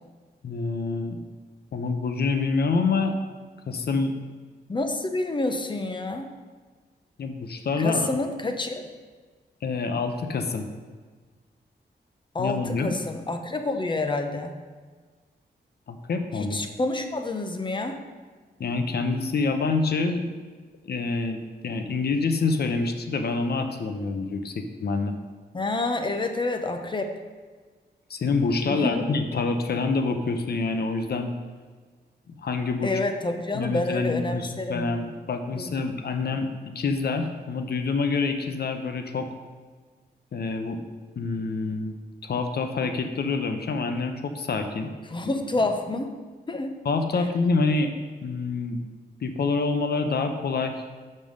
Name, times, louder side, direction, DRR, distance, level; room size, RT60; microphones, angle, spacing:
voice 1, 0.4-1.2 1.7-3.1 3.7-4.1 7.2-8.2 9.6-10.7 12.4-12.9 15.9-16.6 18.6-20.3 20.8-25.1 28.1-31.3 32.3-32.9 33.5-36.5 36.7-39.3 40.3-40.8 41.2-41.9 42.2-44.9 45.2-45.3 46.8-47.9 48.2-48.8 49.2-50.8, left 4 dB, 65° left, 6 dB, 0.8 m, -26 dB
voice 2, 4.7-6.3 7.8-8.8 12.3-14.6 16.3-18.0 25.5-27.1 28.6-29.1 32.8-35.0 35.5-35.8 45.1-46.1 46.5-46.8, left 2 dB, 25° left, 6 dB, 0.7 m, -28 dB
5.4 x 5.4 x 6.4 m, 1.4 s
wide cardioid pair, 95°, 18 cm